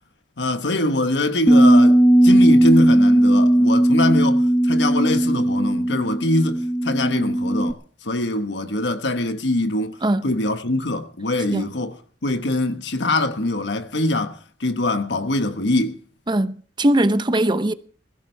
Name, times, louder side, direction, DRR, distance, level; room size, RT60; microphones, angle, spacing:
voice 1, 0.4-2.0 2.2-7.8 8.0-10.0 10.2-16.0, left 2 dB, 85° left, 1.3 m, -23 dB
Bass guitar, 1.5-7.7, right 1 dB, 10° left, 0.7 m, -16 dB
voice 2, 16.3-17.7, right 1 dB, 25° right, 0.7 m, -20 dB
21.5 x 15.5 x 3.4 m
head